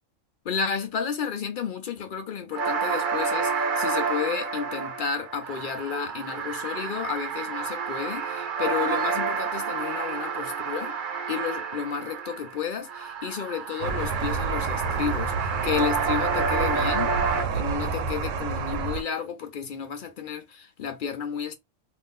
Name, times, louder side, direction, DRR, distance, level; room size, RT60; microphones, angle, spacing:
voice 1, 0.4-11.0 11.3-17.1 17.5-21.5, left 7 dB, 65° left, 0.5 m, -32 dB
sound 1, 2.5-12.6 12.8-17.4, right 5 dB, 50° right, 0.7 m, -29 dB
sound 2, 13.8-19.0, right 5 dB, 75° right, 0.9 m, -29 dB
2.6 x 2.5 x 3.5 m
omnidirectional pair, 1.4 m